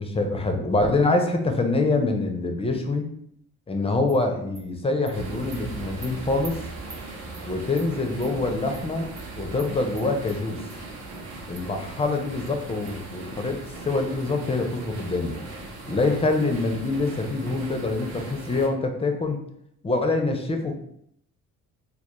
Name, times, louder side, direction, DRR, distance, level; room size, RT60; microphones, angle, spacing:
voice 1, 0.0-3.1 3.7-6.6 7.5-9.1 9.4-10.6 11.5-13.6 13.8-15.4 15.9-19.4 19.8-20.7, left 2 dB, 15° left, 4 dB, 0.4 m, -25 dB
Animal, 4.1-4.2 4.5-4.6 5.1-5.2 5.5-5.6 6.0-6.1 6.4-6.5 6.9-7.0 7.3-7.4 7.8-7.9 8.2-8.3 8.7-8.8 9.2-9.3 9.6-9.7 10.0-10.4 10.7-10.8 11.1-11.2 11.5-11.6 12.0-12.1 12.5-12.6 12.9-13.0, right 3 dB, 30° right, 0.6 m, -44 dB
sound 1, 5.1-18.7, right 3 dB, 70° right, 0.7 m, -38 dB
2.2 x 2.1 x 2.9 m, 0.70 s
hypercardioid pair, 55°, 39 cm